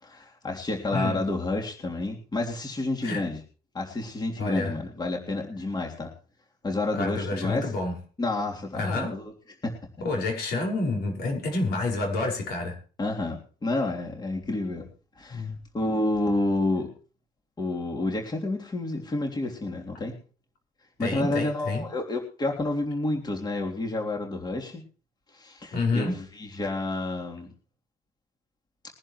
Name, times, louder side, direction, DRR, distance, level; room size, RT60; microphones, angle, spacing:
voice 1, 0.0-3.4 3.7-6.1 6.6-7.7 8.2-9.3 9.6-9.8 13.0-14.9 15.2-15.5 15.7-16.9 17.6-20.2 21.0-24.8 25.3-27.5, left 2 dB, 25° left, 0 dB, 3.3 m, -29 dB
voice 2, 0.9-1.2 3.0-3.2 4.4-4.8 6.9-8.0 8.7-9.1 10.0-12.8 15.3-15.6 21.0-21.8 25.7-26.2, left 3 dB, 70° left, 1 dB, 5.6 m, -28 dB
22.0 x 10.5 x 3.2 m, 0.37 s
cardioid pair, 110°, 17 cm